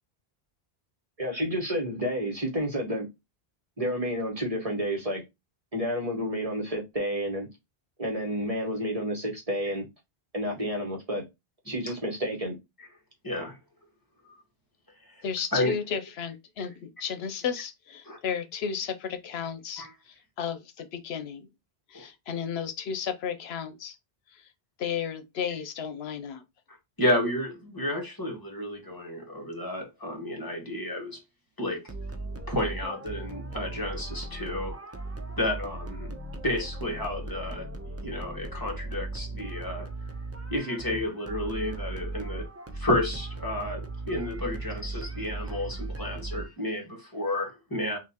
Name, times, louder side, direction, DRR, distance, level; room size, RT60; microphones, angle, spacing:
voice 1, 1.2-3.1 3.8-5.2 5.7-7.5 8.0-9.9 10.3-11.2 11.7-12.5, equal, 35° right, 1.2 m, -30 dB
voice 2, 13.2-13.6 15.5-15.8 18.1-18.2 19.8-19.9 21.9-22.0 27.0-31.2 31.6-31.8 32.5-34.8 35.4-36.1 36.4-37.7 38.0-39.9 40.5-42.5 42.7-48.0, left 1 dB, 20° left, 1.4 m, -31 dB
voice 3, 15.2-21.5 21.9-24.0 24.3-24.4 24.8-26.4, left 7 dB, 80° left, 0.9 m, -33 dB
sound 1, 31.9-46.8, right 2 dB, 20° right, 0.4 m, -37 dB
5.8 x 2.6 x 2.8 m
omnidirectional pair, 1.0 m